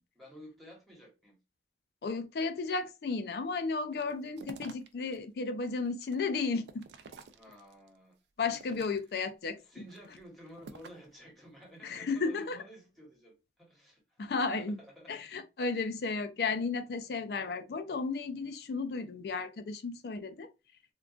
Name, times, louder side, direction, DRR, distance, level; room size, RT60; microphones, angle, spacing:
voice 1, 0.1-1.4 7.3-8.8 9.6-15.2, equal, ahead, 1.0 m, -53 dB
voice 2, 2.0-6.8 8.4-9.6 11.8-12.6 14.2-14.8 15.1-20.5, left 4 dB, 60° left, 0.4 m, -34 dB
sound 1, 3.9-5.2 5.6-7.9 8.4-9.3 9.8-11.1, right 4 dB, 75° right, 0.4 m, -51 dB
3.7 x 2.2 x 2.3 m
head